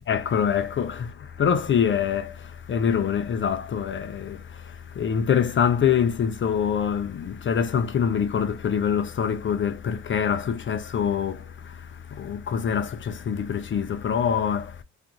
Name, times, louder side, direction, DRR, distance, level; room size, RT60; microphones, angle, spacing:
voice 1, 0.1-14.8, left 7 dB, 40° left, 0.5 m, -25 dB
2.6 x 2.5 x 2.8 m
cardioid pair, 90°, 30 cm